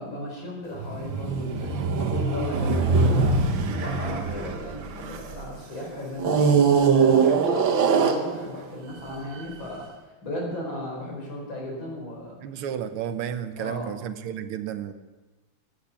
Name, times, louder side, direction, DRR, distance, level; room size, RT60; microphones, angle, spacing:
voice 1, 0.0-3.4 3.7-6.6 6.9-9.9 10.2-12.4 13.6-14.0, left 1 dB, 60° left, -2 dB, 5.4 m, -35 dB
sound 1, 0.7-5.5 6.2-8.7 9.4-9.5, right 5 dB, 65° right, 1.9 m, -22 dB
voice 2, 12.4-14.9, right 9 dB, 85° right, 10 dB, 1.8 m, -32 dB
15.5 x 10.0 x 7.0 m, 1.2 s
omnidirectional pair, 2.4 m